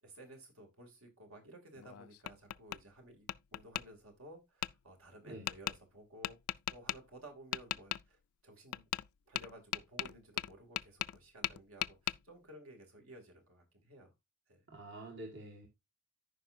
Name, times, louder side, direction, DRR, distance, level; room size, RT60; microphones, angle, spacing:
voice 1, 0.0-6.4 6.7-8.9 9.3-14.1 14.5-14.7, right 1 dB, 75° right, 2.7 m, -55 dB
Tap, 1.8-2.8 3.3-3.8 4.6-4.7 5.5-5.8 6.2-7.0 7.5-8.0 8.7-9.1 9.4-11.2 11.4-12.2, left 13 dB, 85° left, 0.4 m, -37 dB
voice 2, 14.7-15.7, right 1 dB, 55° right, 1.7 m, -47 dB
14.0 x 5.3 x 2.6 m
head